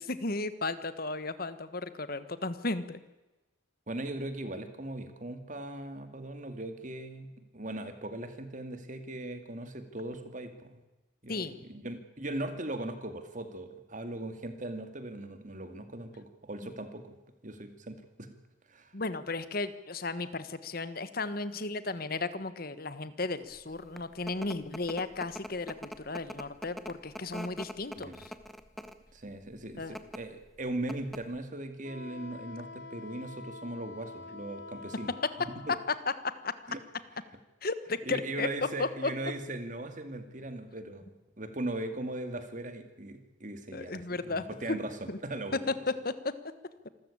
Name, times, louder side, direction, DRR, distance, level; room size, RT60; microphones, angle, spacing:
voice 1, 0.0-3.0 11.3-11.6 18.9-28.3 29.8-30.0 36.4-36.5 37.6-38.5 38.8-39.1 43.7-44.8 45.1-45.2 46.0-46.1, left 3 dB, 50° left, 13 dB, 1.3 m, -35 dB
voice 2, 3.9-10.7 11.2-17.2 17.4-18.4 18.7-18.9 28.0-28.2 29.1-35.1 35.7-35.8 36.7-36.8 38.0-45.6, right 1 dB, 40° right, 8 dB, 2.3 m, -39 dB
sound 1, 23.7-29.1 29.8-30.2 30.6-30.7 30.9-31.4, equal, ahead, 1.1 m, -43 dB
Wind instrument woodwind instrument, 31.8-36.0, left 3 dB, 65° left, 1.1 m, -46 dB
26.5 x 14.0 x 8.7 m, 1.1 s
head